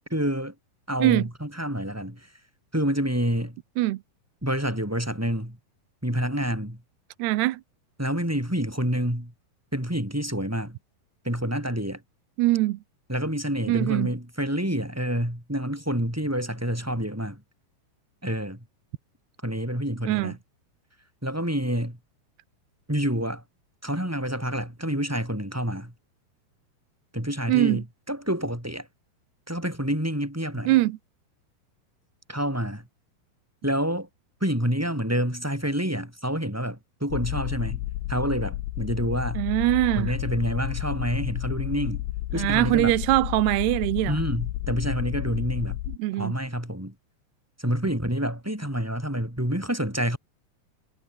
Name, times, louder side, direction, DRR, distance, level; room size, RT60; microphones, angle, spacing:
voice 1, 0.1-0.5 0.9-2.3 2.7-3.6 4.4-5.6 6.0-6.8 8.0-9.3 9.7-10.8 11.2-12.0 13.1-17.4 18.2-18.6 19.4-20.4 21.2-22.0 22.9-23.4 23.8-25.9 27.1-28.9 29.5-30.7 32.3-32.9 33.6-34.1 34.4-39.4 39.9-42.0 42.3-43.0 44.1-45.8 46.1-46.9 47.6-50.2, equal, 5° right, 6.9 m, -28 dB
voice 2, 7.2-7.6 12.4-12.8 13.7-14.1 20.1-20.3 27.5-27.8 30.7-31.0 39.4-40.1 42.3-44.2 46.0-46.3, right 17 dB, 85° right, 3.0 m, -22 dB
sound 1, 37.1-46.0, left 17 dB, 85° left, 3.0 m, -31 dB
omnidirectional pair, 4.6 m